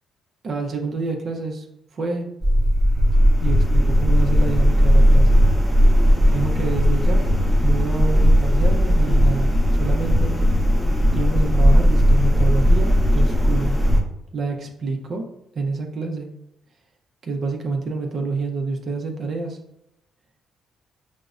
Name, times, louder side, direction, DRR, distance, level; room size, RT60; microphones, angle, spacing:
voice 1, 0.4-1.7 1.9-2.3 3.4-5.4 6.3-7.3 7.6-10.3 11.1-13.8 14.3-15.3 15.5-16.3 17.2-19.6, right 4 dB, 50° right, 3 dB, 0.6 m, -27 dB
sound 1, 2.4-14.0, equal, 5° right, 0.7 m, -17 dB
5.1 x 2.1 x 2.4 m, 0.81 s
cardioid pair, 90°, 0 cm